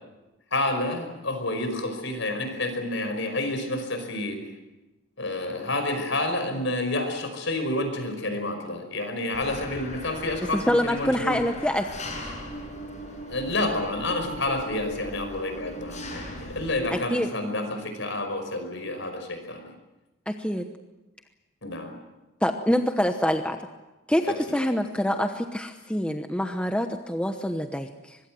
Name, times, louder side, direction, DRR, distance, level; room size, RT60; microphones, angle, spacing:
voice 1, 0.5-4.4 5.2-11.4 13.3-19.7 21.6-21.9 24.3-24.4, left 2 dB, 60° left, 7 dB, 5.4 m, -29 dB
Engine, 9.3-16.7, equal, 35° left, 7.5 m, -39 dB
voice 2, 10.5-11.9 12.2-12.3 16.9-17.3 20.3-20.6 22.4-23.7 24.1-28.2, equal, 5° left, 6 dB, 1.0 m, -26 dB
24.5 x 21.5 x 7.7 m, 1.0 s
head